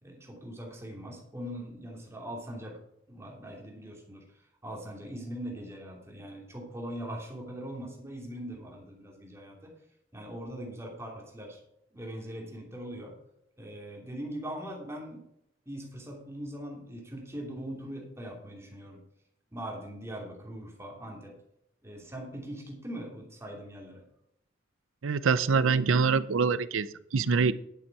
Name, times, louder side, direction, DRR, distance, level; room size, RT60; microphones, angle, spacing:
voice 1, 0.0-2.8 3.1-4.2 4.6-9.7 10.1-11.6 11.9-13.2 13.6-15.2 15.7-19.0 19.5-21.3 21.8-24.0, right 1 dB, 15° right, -1 dB, 2.7 m, -41 dB
voice 2, 25.0-27.5, right 5 dB, 85° right, 15 dB, 0.6 m, -25 dB
10.5 x 8.3 x 4.6 m, 0.78 s
head